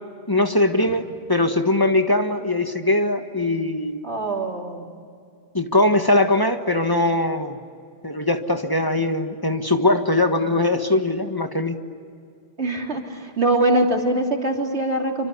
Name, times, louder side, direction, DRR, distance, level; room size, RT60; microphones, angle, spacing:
voice 1, 0.3-4.0 5.5-7.6 8.0-11.8, left 2 dB, 20° left, 6 dB, 1.6 m, -21 dB
voice 2, 4.0-4.8 12.6-15.3, right 1 dB, 90° right, 1 dB, 3.5 m, -23 dB
27.0 x 25.5 x 8.5 m, 2.3 s
omnidirectional pair, 1.1 m